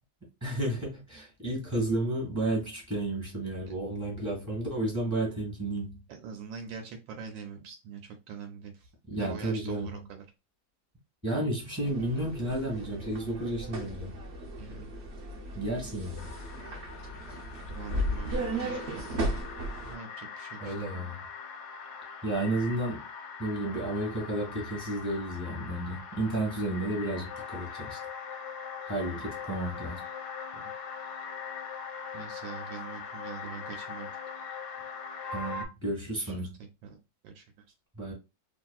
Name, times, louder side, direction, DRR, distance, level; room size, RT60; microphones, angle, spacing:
voice 1, 0.4-6.0 9.1-10.0 11.2-14.2 15.6-16.3 20.6-21.2 22.2-23.0 23.4-28.0 28.9-30.0 35.3-36.5 38.0-38.1, right 1 dB, 10° right, 1.3 m, -32 dB
voice 2, 6.1-10.3 14.6-14.9 17.7-19.4 19.8-20.7 30.5-30.6 32.1-34.1 35.2-35.3 36.1-37.0 37.2-37.4, right 6 dB, 75° right, 1.3 m, -44 dB
sound 1, 11.8-19.9, right 1 dB, 60° right, 0.7 m, -36 dB
sound 2, 16.2-35.6, left 5 dB, 70° left, 1.0 m, -41 dB
2.9 x 2.6 x 2.3 m
omnidirectional pair, 2.1 m